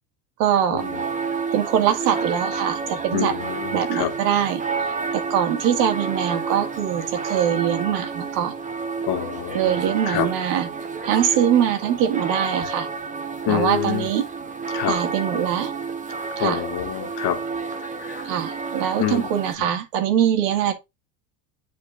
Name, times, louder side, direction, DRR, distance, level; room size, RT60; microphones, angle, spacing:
voice 1, 0.4-0.8 1.5-3.3 3.7-4.6 5.1-8.5 9.5-10.7 11.0-12.9 13.5-14.2 14.9-15.7 16.4-16.6 18.2-20.7, right 9 dB, 85° right, 2.2 m, -22 dB
sound 1, 0.8-19.6, right 4 dB, 15° right, 1.0 m, -30 dB
voice 2, 3.1-4.1 9.1-9.7 10.0-10.3 13.5-14.1 14.7-15.0 16.4-17.4 18.0-18.2 19.0-19.3, left 11 dB, 50° left, 1.7 m, -26 dB
10.5 x 4.6 x 2.6 m
supercardioid pair, 140°, 48 cm